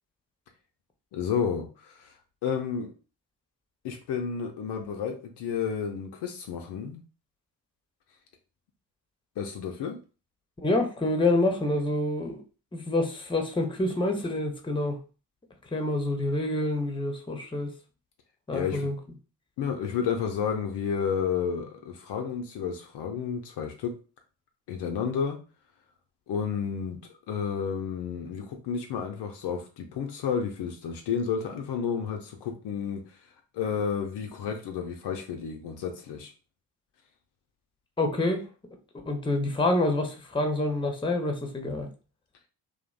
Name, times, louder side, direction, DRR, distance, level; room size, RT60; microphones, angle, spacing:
voice 1, 1.1-2.2 2.4-2.9 3.8-7.0 9.4-10.0 18.5-18.9 19.6-24.0 24.7-25.4 26.3-33.2 33.5-36.3, left 7 dB, 60° left, 3 dB, 0.6 m, -31 dB
voice 2, 10.6-12.4 12.7-15.0 15.7-17.7 18.5-18.9 38.0-38.4 39.1-41.9, left 2 dB, 10° left, 3 dB, 0.7 m, -27 dB
2.5 x 2.0 x 2.4 m, 0.34 s
hypercardioid pair, 40°, 46 cm